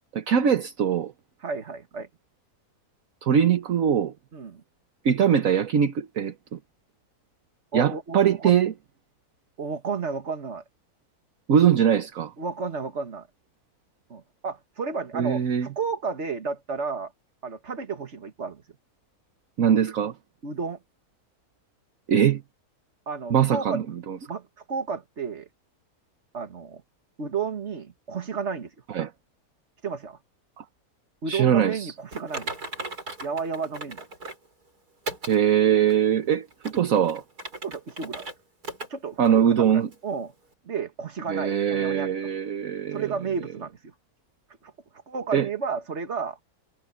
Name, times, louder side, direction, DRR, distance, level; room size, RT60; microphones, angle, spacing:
voice 1, 0.1-1.1 3.2-4.1 5.0-6.6 7.7-8.7 11.5-12.3 15.1-15.7 19.6-20.1 22.1-22.4 23.3-24.2 28.9-29.1 30.6-30.7 31.3-31.9 35.3-37.2 39.2-39.9 41.3-43.0 45.3-45.5, right 8 dB, 65° right, 1.4 m, -22 dB
voice 2, 1.4-2.1 4.3-4.6 7.7-8.5 9.6-10.6 12.4-13.3 14.1-17.1 17.4-18.6 20.4-20.8 23.1-23.8 24.3-25.5 26.3-26.8 27.2-28.7 29.8-30.2 31.2-32.5 33.2-34.0 37.6-38.3 38.9-40.3 40.6-42.1 42.9-43.9 44.6-44.7 45.1-46.4, right 5 dB, 45° right, 2.1 m, -32 dB
Typing, 32.1-34.5 35.1-35.4 35.9-36.0 36.5-38.3 38.6-38.9 39.2-39.3 39.9-40.0, right 2 dB, 80° right, 6.7 m, -37 dB
omnidirectional pair, 1.6 m